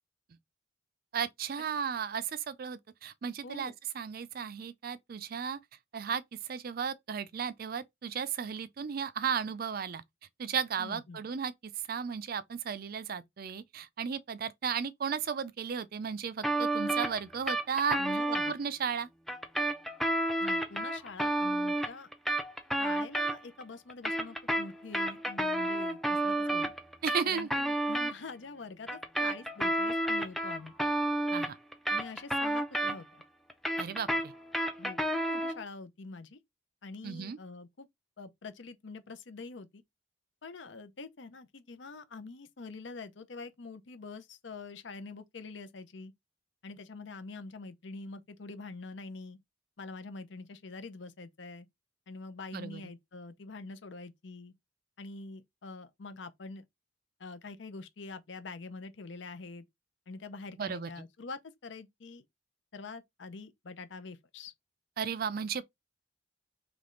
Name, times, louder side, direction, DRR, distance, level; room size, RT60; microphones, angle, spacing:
voice 1, 1.1-5.6 5.9-10.0 10.4-11.5 11.9-18.0 18.5-19.1 27.0-27.5 31.3-31.6 33.8-34.3 37.0-37.4 52.5-52.9 60.6-60.9 65.0-65.6, right 7 dB, 50° right, 0.4 m, -35 dB
voice 2, 10.8-11.2 18.0-18.6 20.4-22.1 22.8-26.7 27.2-30.7 31.9-33.2 34.8-35.0 35.3-36.4 36.8-37.9 38.2-39.8 40.4-46.1 46.6-49.4 49.8-51.7 52.1-54.5 55.0-56.6 57.2-59.6 60.1-62.2 62.7-64.5, left 3 dB, 70° left, 0.7 m, -45 dB
sound 1, 16.4-18.5 19.3-23.6 23.9-28.1 28.9-33.2 33.5-35.6, right 1 dB, ahead, 0.5 m, -31 dB
3.5 x 3.2 x 3.8 m
head